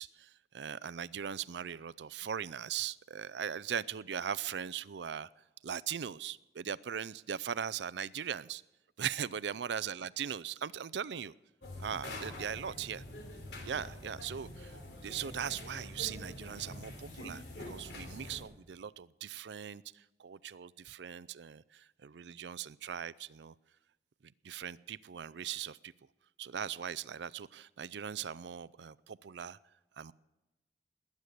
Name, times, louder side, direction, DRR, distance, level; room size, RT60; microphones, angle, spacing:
voice 1, 0.0-5.3 5.6-8.6 9.0-11.3 11.8-13.0 13.6-14.8 15.0-23.5 24.2-25.9 26.4-29.6 30.0-30.1, right 8 dB, 80° right, 0.4 m, -39 dB
sound 1, 11.6-18.4, left 1 dB, 80° left, 3.5 m, -46 dB
20.5 x 9.4 x 6.6 m
head